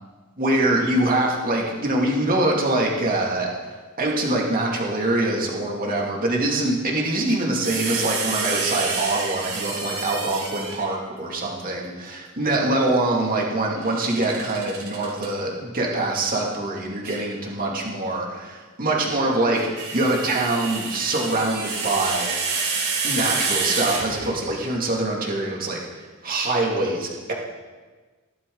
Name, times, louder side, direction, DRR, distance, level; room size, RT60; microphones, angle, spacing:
voice 1, 0.4-22.6 23.0-27.3, right 2 dB, 40° right, -2 dB, 2.4 m, -24 dB
sound 1, 7.6-10.9 13.8-15.3 17.0-17.2 19.3-24.5, right 4 dB, 85° right, 4.2 m, -28 dB
16.0 x 12.0 x 4.0 m, 1.4 s
head